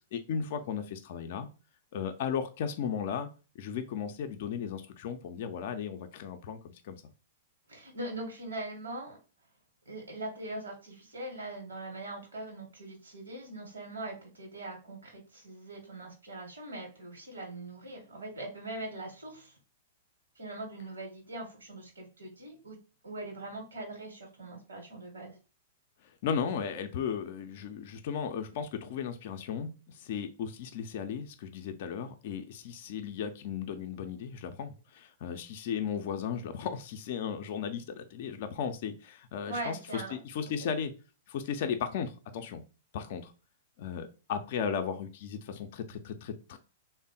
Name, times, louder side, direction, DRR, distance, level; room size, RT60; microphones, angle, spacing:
voice 1, 0.1-1.5 1.9-3.3 3.6-7.0 26.0-40.9 41.3-42.6 42.9-43.3 43.8-46.6, left 7 dB, 50° left, 6 dB, 0.4 m, -35 dB
voice 2, 7.7-9.2 9.9-19.5 20.4-22.8 23.0-25.4 39.5-40.2 40.6-40.7, right 2 dB, 70° right, 2 dB, 0.9 m, -41 dB
3.4 x 2.0 x 3.8 m, 0.34 s
figure-of-eight pair, 105°, 0 cm